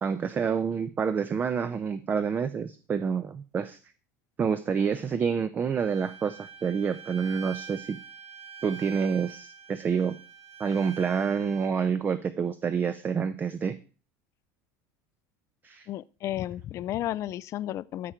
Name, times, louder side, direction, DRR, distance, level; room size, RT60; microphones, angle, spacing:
voice 1, 0.0-3.8 4.4-8.0 8.6-10.2 10.6-13.8 15.6-15.9, right 6 dB, 20° right, 0.5 m, -28 dB
Bowed string instrument, 5.8-11.7, right 7 dB, 70° right, 1.9 m, -45 dB
voice 2, 15.9-18.1, left 13 dB, 35° left, 0.4 m, -33 dB
13.5 x 4.5 x 4.9 m
supercardioid pair, 140°, 8 cm